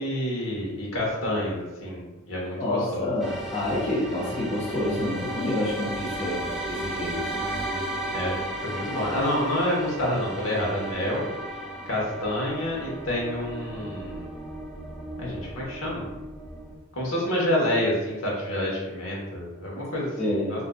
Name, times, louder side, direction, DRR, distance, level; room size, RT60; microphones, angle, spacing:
voice 1, 0.0-3.1 7.4-8.4 8.6-11.3 11.9-14.3 15.2-16.1 16.9-20.6, left 1 dB, 85° left, -4 dB, 1.1 m, -28 dB
voice 2, 2.6-7.4 20.2-20.6, left 1 dB, 35° left, -6 dB, 0.7 m, -28 dB
sound 1, 3.2-16.7, right 1 dB, ahead, 0.4 m, -35 dB
3.7 x 2.6 x 2.3 m, 1.1 s
head